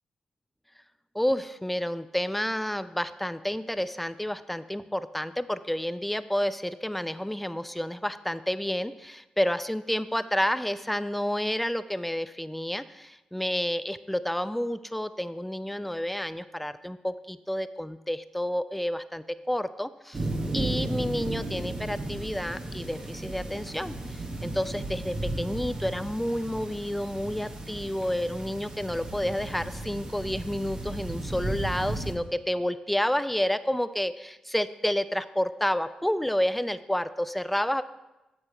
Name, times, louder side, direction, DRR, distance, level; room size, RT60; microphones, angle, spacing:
voice 1, 1.1-20.3 20.5-37.8, equal, 5° left, 14 dB, 0.4 m, -30 dB
sound 1, 20.1-32.1, right 2 dB, 40° right, 1.4 m, -35 dB
8.9 x 7.0 x 3.3 m, 1.0 s
cardioid pair, 65°, 2 cm